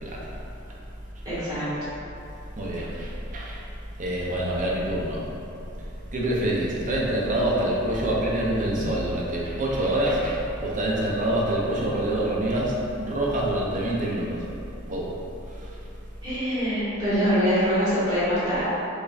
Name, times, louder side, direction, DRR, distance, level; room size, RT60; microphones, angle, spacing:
voice 1, 0.0-0.3 2.6-3.6 4.0-5.2 6.1-14.4 14.9-15.1, right 1 dB, 40° right, -4 dB, 0.6 m, -26 dB
voice 2, 1.2-1.7 16.2-18.6, equal, 20° right, -13 dB, 1.5 m, -24 dB
4.9 x 2.6 x 2.4 m, 2.8 s
head